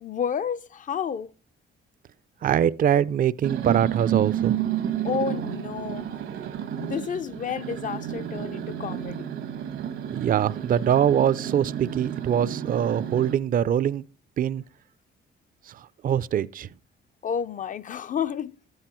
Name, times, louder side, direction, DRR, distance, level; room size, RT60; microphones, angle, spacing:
voice 1, 0.0-1.3 5.0-9.3 17.2-18.5, left 7 dB, 40° left, 0.4 m, -31 dB
voice 2, 2.4-4.6 10.1-14.0 14.4-14.6 15.7-16.7, right 9 dB, 45° right, 0.4 m, -23 dB
sound 1, 3.4-13.3, right 10 dB, 75° right, 1.2 m, -31 dB
11.5 x 8.0 x 4.4 m
cardioid pair, 90°, 20 cm